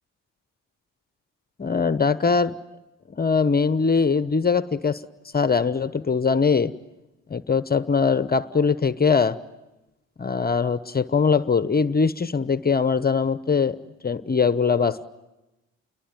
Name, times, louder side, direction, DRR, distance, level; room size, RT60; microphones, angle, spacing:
voice 1, 1.6-2.6 3.1-5.0 5.3-6.7 7.3-9.4 10.2-13.8 14.0-15.1, left 5 dB, 30° left, 15 dB, 1.0 m, -21 dB
29.0 x 22.5 x 9.2 m, 0.98 s
supercardioid pair, 60°, 33 cm